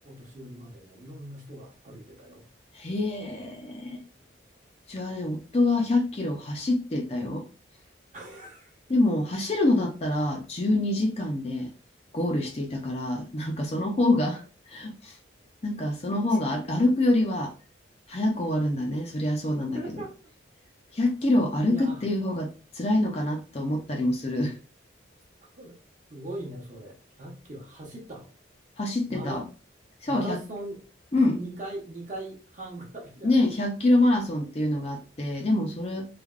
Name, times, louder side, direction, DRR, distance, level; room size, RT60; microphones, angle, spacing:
voice 1, 0.0-2.4 8.1-9.0 16.3-16.5 19.7-20.2 21.5-22.0 25.5-25.8 26.1-28.3 29.1-29.5 30.1-30.9 31.1-33.5, right 1 dB, 40° right, 0.9 m, -40 dB
voice 2, 2.7-4.0 4.9-7.4 8.9-11.7 12.1-14.4 14.7-15.1 15.6-17.5 18.1-19.8 20.9-24.6 28.8-29.4 30.0-30.4 31.1-31.4 33.2-36.1, left 2 dB, 35° left, 0.5 m, -26 dB
3.2 x 2.2 x 2.3 m
head